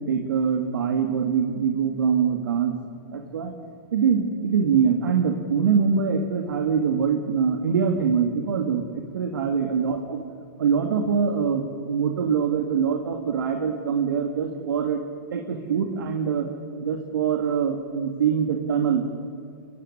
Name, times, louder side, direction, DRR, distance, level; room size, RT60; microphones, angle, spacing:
voice 1, 0.1-2.8 3.1-3.5 3.9-8.8 9.1-10.2 10.6-15.0 15.3-16.5 16.8-19.0, right 6 dB, 75° right, 3 dB, 2.3 m, -23 dB
23.0 x 15.0 x 9.9 m, 2.5 s
hypercardioid pair, 145°, 12 cm